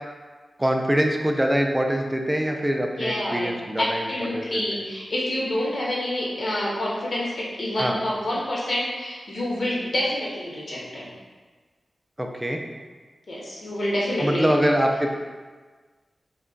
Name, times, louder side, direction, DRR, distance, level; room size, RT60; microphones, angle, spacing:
voice 1, 0.6-4.5 7.8-8.0 12.2-12.6 14.2-15.1, equal, 10° right, 2 dB, 0.3 m, -24 dB
voice 2, 3.0-11.1 13.3-14.7, left 1 dB, 55° left, -5 dB, 0.8 m, -27 dB
3.3 x 2.2 x 3.7 m, 1.4 s
wide cardioid pair, 110°, 0 cm